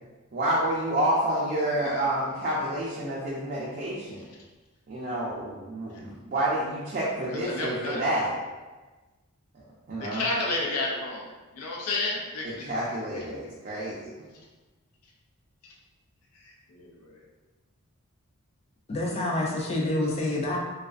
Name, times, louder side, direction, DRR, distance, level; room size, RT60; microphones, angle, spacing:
voice 1, 0.3-4.2 4.9-8.3 9.9-10.3 12.7-14.0, right 1 dB, 40° right, -6 dB, 0.4 m, -28 dB
voice 2, 1.7-2.0 5.1-5.2 5.9-6.0 7.3-8.3 10.0-12.7 13.1-13.2 15.6-15.7 16.3-17.2, left 2 dB, 80° left, -2 dB, 0.5 m, -32 dB
voice 3, 18.9-20.6, left 1 dB, 30° left, -2 dB, 0.4 m, -27 dB
2.3 x 2.3 x 2.4 m, 1.2 s
head